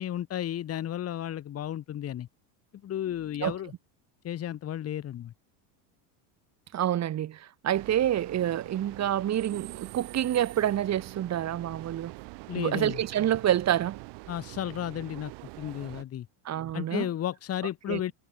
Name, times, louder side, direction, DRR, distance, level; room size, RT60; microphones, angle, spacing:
voice 1, 0.0-2.3 2.8-3.7 4.2-5.3 12.5-13.0 14.3-15.3 15.6-16.3 16.7-18.1, left 11 dB, 30° left, 2.4 m, -33 dB
voice 2, 6.7-12.1 12.6-14.0 16.5-17.1 17.9-18.0, right 11 dB, 35° right, 5.3 m, -27 dB
sound 1, 7.7-16.0, right 26 dB, 60° right, 5.5 m, -44 dB
cardioid pair, 150°, 47 cm